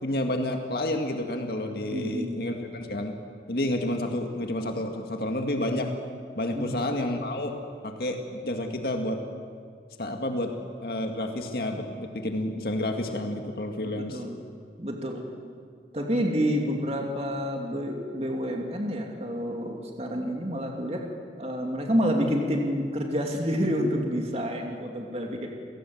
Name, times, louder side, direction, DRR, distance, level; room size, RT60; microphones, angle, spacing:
voice 1, 0.0-3.2 3.5-5.9 6.4-7.6 7.8-9.2 10.0-10.5 10.8-14.2, left 1 dB, 60° left, 3 dB, 2.1 m, -30 dB
voice 2, 1.9-2.4 6.5-6.8 13.8-14.4 14.8-15.3 15.9-21.0 21.4-25.5, equal, 35° right, 1 dB, 2.8 m, -28 dB
29.0 x 18.0 x 8.0 m, 2.2 s
head